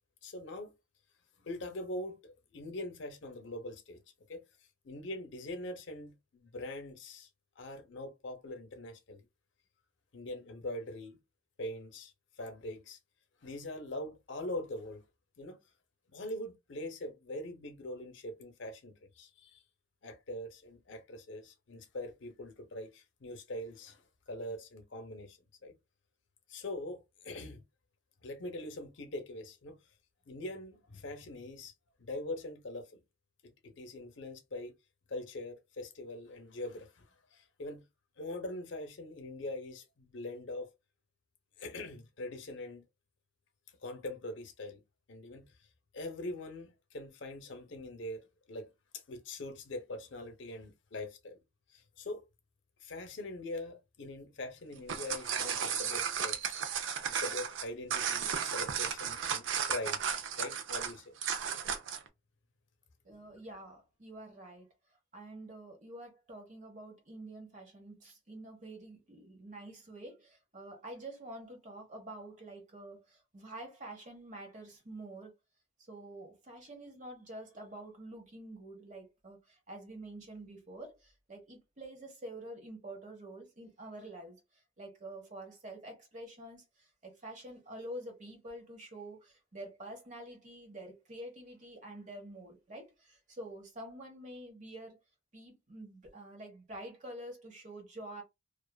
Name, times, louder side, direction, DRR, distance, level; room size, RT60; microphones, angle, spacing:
voice 1, 0.2-0.7 1.4-4.0 4.3-4.4 4.8-7.3 7.6-9.2 10.1-11.2 11.6-12.1 12.4-13.0 13.4-15.0 15.4-15.6 16.1-19.6 20.0-25.7 26.5-27.6 28.2-29.8 30.3-31.7 32.0-33.0 33.4-34.7 35.1-37.8 38.2-40.7 41.6-42.8 43.8-44.8 45.1-45.5 45.9-48.7 49.1-51.4 51.7-52.2 52.8-60.0 60.4-61.2, left 1 dB, 70° left, 0.6 m, -43 dB
sound 1, 54.7-62.1, right 7 dB, 75° right, 0.4 m, -34 dB
voice 2, 63.0-64.7 65.1-75.3 75.9-95.0 95.3-98.2, right 1 dB, 40° right, 0.9 m, -47 dB
2.4 x 2.4 x 2.2 m
head